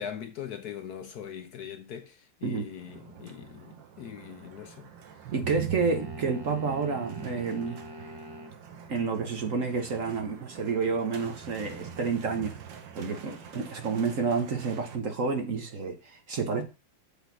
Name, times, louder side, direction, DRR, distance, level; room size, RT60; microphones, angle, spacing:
voice 1, 0.0-4.9, left 8 dB, 65° left, 1.0 m, -41 dB
sound 1, 2.7-15.0, right 7 dB, 75° right, 1.7 m, -43 dB
voice 2, 5.3-7.8 8.9-12.6 12.9-16.6, right 5 dB, 50° right, 1.2 m, -29 dB
sound 2, 5.8-8.6, equal, 20° right, 0.6 m, -44 dB
6.9 x 4.0 x 6.0 m
omnidirectional pair, 2.0 m